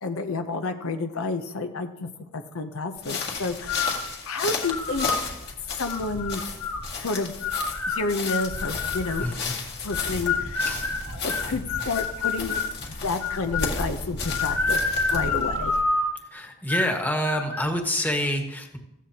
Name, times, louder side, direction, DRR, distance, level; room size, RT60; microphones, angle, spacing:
voice 1, 0.0-5.1 5.8-6.4 7.0-7.3 7.9-9.3 9.8-10.8 11.1-12.6 12.9-14.8 15.1-15.8, left 3 dB, 65° left, 7 dB, 0.7 m, -30 dB
sound 1, 3.0-15.8, left 3 dB, 50° left, 2.2 m, -33 dB
sound 2, 3.7-4.1 4.6-5.2 5.9-6.9 7.4-9.3 9.9-12.7 13.2-13.8 14.3-16.2 16.7-17.0 17.2-17.7, left 4 dB, 85° left, 1.9 m, -28 dB
voice 2, 9.2-9.5 10.6-10.9 16.3-18.8, equal, 10° left, 3 dB, 1.5 m, -27 dB
15.5 x 15.0 x 2.9 m, 0.91 s
head